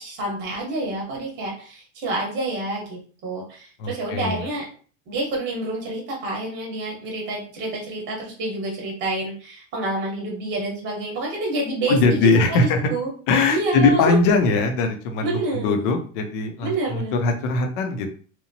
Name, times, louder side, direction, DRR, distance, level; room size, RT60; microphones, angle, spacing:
voice 1, 0.0-4.7 5.1-13.1 13.5-14.1 15.2-16.0 16.6-17.2, right 2 dB, 30° right, -1 dB, 0.9 m, -28 dB
voice 2, 3.8-4.4 11.9-12.9 13.3-18.1, left 3 dB, 45° left, 5 dB, 0.5 m, -21 dB
2.9 x 2.0 x 2.6 m, 0.42 s
supercardioid pair, 160°, 39 cm